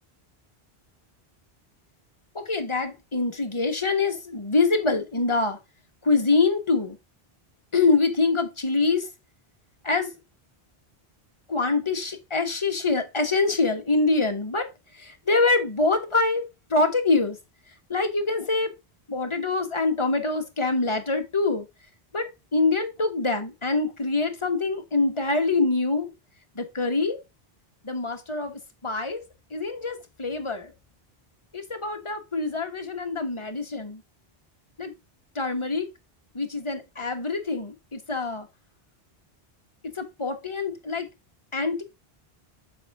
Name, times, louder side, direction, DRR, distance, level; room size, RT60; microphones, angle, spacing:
voice 1, 2.3-5.6 6.0-7.0 7.7-9.1 9.8-10.1 11.5-14.7 14.9-17.4 17.9-18.7 19.1-21.6 22.1-26.1 26.5-27.2 27.8-29.2 29.5-30.7 31.5-34.0 34.8-34.9 35.3-35.9 36.3-38.5 39.9-41.1 41.5-41.8, left 3 dB, 30° left, 1.4 m, -25 dB
7.6 x 5.6 x 3.5 m
omnidirectional pair, 1.0 m